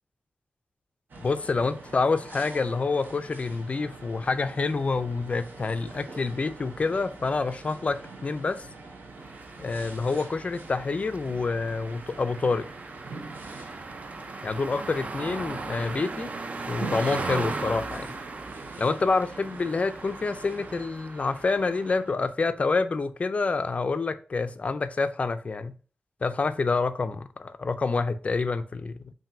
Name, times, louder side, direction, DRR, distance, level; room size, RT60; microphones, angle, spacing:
sound 1, 1.1-20.9, right 3 dB, 70° right, 0.8 m, -44 dB
voice 1, 1.2-8.7 9.6-12.7 14.4-16.3 16.7-18.1 18.8-25.7 26.2-29.1, left 4 dB, 40° left, 0.3 m, -27 dB
sound 2, 9.2-22.2, right 3 dB, 45° right, 0.4 m, -38 dB
5.4 x 2.6 x 2.5 m
wide cardioid pair, 120°, 3 cm